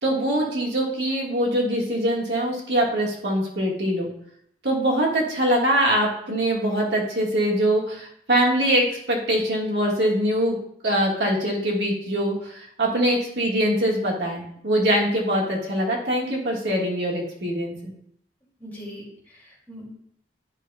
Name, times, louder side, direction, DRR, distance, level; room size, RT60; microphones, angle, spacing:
voice 1, 0.0-4.1 4.6-10.6 10.8-17.9, right 1 dB, 80° right, -2 dB, 1.6 m, -23 dB
voice 2, 18.6-19.9, equal, 10° left, -6 dB, 2.5 m, -41 dB
10.5 x 5.4 x 2.3 m, 0.67 s
head